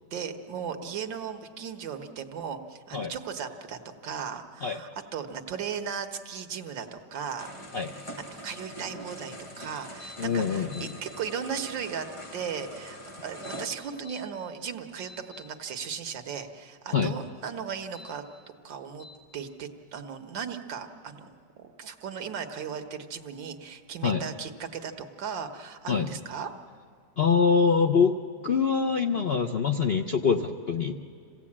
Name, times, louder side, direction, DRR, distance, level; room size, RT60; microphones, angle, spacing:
voice 1, 0.1-7.5 8.2-12.1 12.3-13.0 13.2-18.2 18.6-19.1 19.3-26.5, right 7 dB, 85° right, 6 dB, 1.9 m, -37 dB
sound 1, 7.4-13.7, equal, 20° left, 1.2 m, -43 dB
sound 2, 10.0-10.2 10.5-10.9 13.3-14.2 14.7-15.5 17.8-18.1 19.0-19.2, left 3 dB, 80° left, 4.0 m, -48 dB
voice 2, 10.2-10.9 16.9-17.1 24.0-24.3 25.9-26.1 27.2-28.1 28.4-31.0, left 5 dB, 60° left, 4 dB, 0.6 m, -24 dB
27.0 x 17.0 x 8.6 m, 2.2 s
omnidirectional pair, 1.9 m